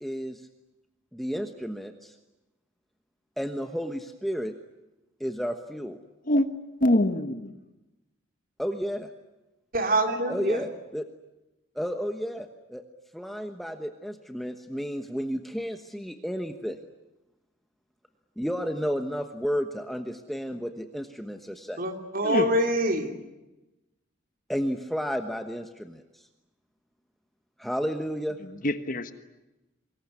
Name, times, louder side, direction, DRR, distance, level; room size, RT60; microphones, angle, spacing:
voice 1, 0.0-0.5 1.1-2.2 3.4-4.5 5.2-6.0 8.6-9.1 10.3-11.0 11.7-12.8 13.1-16.8 18.4-21.8 24.5-26.3 27.6-28.4, equal, ahead, 6 dB, 1.2 m, -32 dB
voice 2, 6.8-7.5 22.2-22.5 28.6-29.1, left 1 dB, 45° left, 10 dB, 1.4 m, -24 dB
voice 3, 9.7-10.6 21.8-23.1, right 1 dB, 45° right, 5 dB, 3.1 m, -25 dB
25.0 x 21.0 x 9.8 m, 1.0 s
head